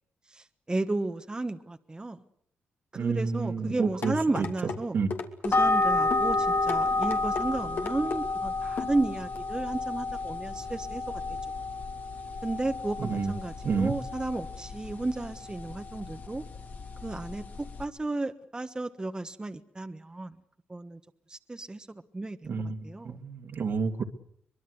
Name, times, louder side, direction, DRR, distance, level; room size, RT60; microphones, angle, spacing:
voice 1, 0.3-2.2 2.9-5.0 5.4-11.2 12.4-16.4 17.0-20.4 20.7-21.0 21.3-22.5 22.8-23.2, right 2 dB, 20° right, 1.4 m, -33 dB
voice 2, 3.0-4.5 4.9-5.1 13.0-13.3 13.6-13.9 22.4-24.0, right 5 dB, 60° right, 2.3 m, -30 dB
sound 1, 4.0-4.8 5.1-5.5 6.1-6.3 6.7-7.5 7.8-8.2 8.8-8.9 9.4-9.5, left 5 dB, 65° left, 2.9 m, -34 dB
sound 2, 5.5-17.8, left 2 dB, 50° left, 2.1 m, -31 dB
23.5 x 22.0 x 8.1 m
cardioid pair, 65°, 4 cm